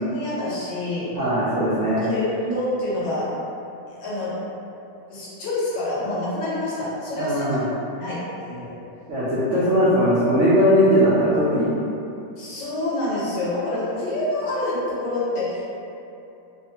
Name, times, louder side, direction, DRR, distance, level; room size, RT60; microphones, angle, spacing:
voice 1, 0.0-1.1 2.0-3.3 4.0-4.4 5.1-7.5 8.0-8.7 12.4-15.7, left 2 dB, 75° left, -8 dB, 1.4 m, -27 dB
voice 2, 1.1-2.0 7.1-7.6 9.1-11.7, equal, 80° right, -11 dB, 0.7 m, -19 dB
3.1 x 2.0 x 2.7 m, 2.7 s
omnidirectional pair, 2.0 m